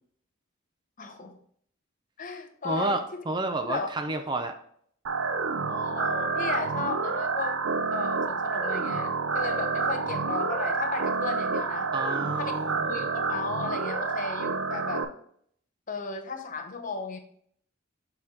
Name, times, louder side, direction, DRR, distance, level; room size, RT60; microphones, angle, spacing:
voice 1, 1.0-1.4 2.2-3.2 3.6-4.1 5.6-7.6 7.9-11.9 12.4-12.5 12.9-15.1 15.9-17.2, left 4 dB, 40° left, 5 dB, 0.8 m, -35 dB
voice 2, 2.6-4.6 11.9-13.1, right 2 dB, 20° right, 6 dB, 0.5 m, -30 dB
sound 1, 5.1-15.1, right 4 dB, 85° right, 0.6 m, -29 dB
6.5 x 4.2 x 3.7 m, 0.63 s
head